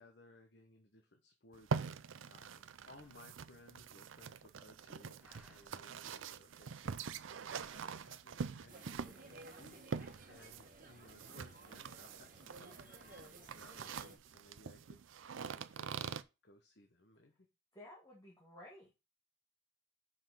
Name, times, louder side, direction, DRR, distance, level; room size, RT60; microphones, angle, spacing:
voice 1, 0.0-7.0 7.6-15.0 15.4-17.5, left 2 dB, 60° left, 5 dB, 1.0 m, -62 dB
sound 1, 1.5-16.2, right 5 dB, 90° right, 0.5 m, -44 dB
sound 2, 2.9-3.3 3.7-3.8 4.0-4.8 5.2-5.8 6.4-8.3 8.7-9.6 9.9-10.8 11.3-12.3 12.6-13.4, right 1 dB, 5° right, 2.0 m, -68 dB
sound 3, 8.7-14.2, right 2 dB, 45° right, 1.7 m, -56 dB
voice 2, 17.7-18.9, left 1 dB, 20° left, -3 dB, 1.8 m, -55 dB
5.5 x 5.5 x 6.1 m, 0.27 s
head